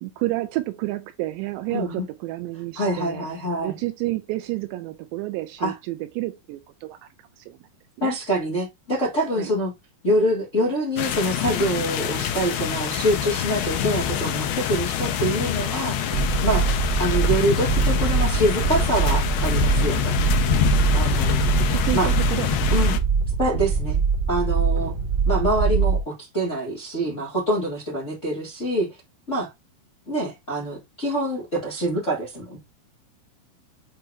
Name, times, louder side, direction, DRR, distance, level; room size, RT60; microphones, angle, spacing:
voice 1, 0.0-3.3 3.6-7.0 7.4-7.6 8.0-8.2 9.4-9.5 21.0-21.2 21.6-23.0, right 18 dB, 80° right, 2.6 m, -30 dB
voice 2, 1.7-2.0 2.7-3.8 5.6-5.7 8.0-9.7 10.0-16.7 17.0-20.2 20.9-21.5 21.9-22.1 22.7-22.9 23.4-24.0 24.3-24.9 25.2-28.9 29.3-29.5 30.1-32.6, right 1 dB, 35° left, 1.1 m, -25 dB
sound 1, 11.0-23.0, left 9 dB, 75° left, 2.3 m, -25 dB
sound 2, 16.1-26.0, right 5 dB, 50° right, 2.2 m, -23 dB
8.2 x 3.0 x 4.8 m
omnidirectional pair, 5.4 m